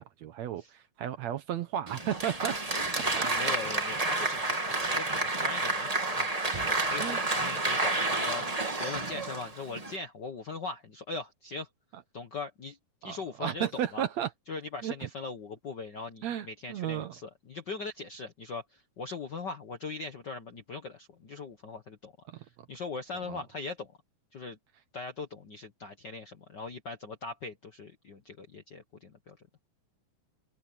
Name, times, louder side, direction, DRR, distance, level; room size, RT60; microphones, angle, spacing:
voice 1, 0.0-2.6 3.0-3.3 7.0-7.2 13.0-14.3 14.8-15.1 16.2-17.1 22.3-22.5 23.3-23.4, right 10 dB, 65° right, 2.0 m, -34 dB
Applause, 1.9-10.0, right 2 dB, 20° right, 1.2 m, -30 dB
voice 2, 3.2-11.7 12.1-12.8 13.0-14.0 14.5-24.0 24.3-24.6 24.9-29.4, left 3 dB, 55° left, 1.2 m, -40 dB
omnidirectional pair, 3.8 m